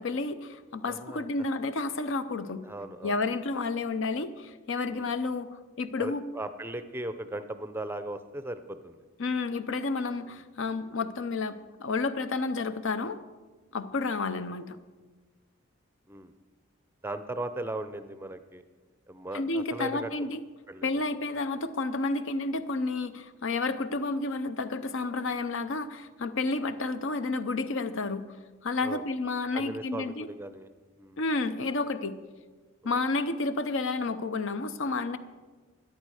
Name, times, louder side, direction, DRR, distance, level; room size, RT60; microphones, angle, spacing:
voice 1, 0.0-2.6 3.0-5.5 5.8-6.2 9.2-13.2 13.7-14.8 19.3-20.4 20.8-28.2 28.6-30.3 31.2-32.2 32.8-35.2, left 3 dB, 60° left, 12 dB, 0.7 m, -31 dB
voice 2, 0.9-1.3 2.6-3.1 4.9-5.1 6.0-9.0 10.3-10.4 16.1-16.3 17.0-18.6 19.1-20.1 20.7-21.0 28.8-29.0 29.5-30.7 31.0-31.2 32.8-32.9, right 1 dB, 10° right, 10 dB, 0.5 m, -38 dB
13.0 x 11.0 x 4.9 m, 1.4 s
head